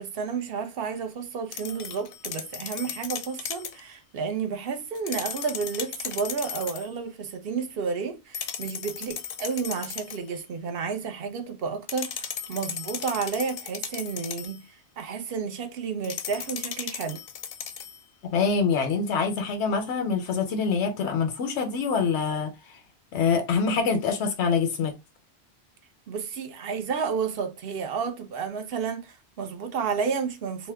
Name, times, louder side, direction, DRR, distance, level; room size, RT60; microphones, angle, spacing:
voice 1, 0.0-17.2 26.1-30.7, right 5 dB, 65° right, 0.8 m, -31 dB
sound 1, 1.5-3.8 4.9-6.9 8.3-10.3 11.9-14.6 16.0-18.0, left 7 dB, 60° left, 0.6 m, -36 dB
voice 2, 18.2-22.5 23.1-24.9, left 5 dB, 90° left, 1.0 m, -25 dB
2.9 x 2.1 x 3.3 m
omnidirectional pair, 1.1 m